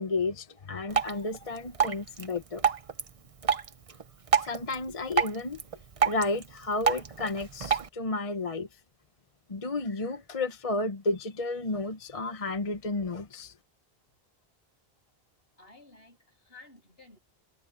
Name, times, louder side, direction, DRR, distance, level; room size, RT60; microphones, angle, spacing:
voice 1, 0.0-2.6 4.4-5.6 6.0-8.7 9.5-13.5, left 3 dB, 35° left, 1.0 m, -32 dB
Drip, 0.9-7.9, right 7 dB, 35° right, 0.8 m, -30 dB
voice 2, 15.6-17.2, left 3 dB, 65° left, 8.4 m, -54 dB
omnidirectional pair, 1.1 m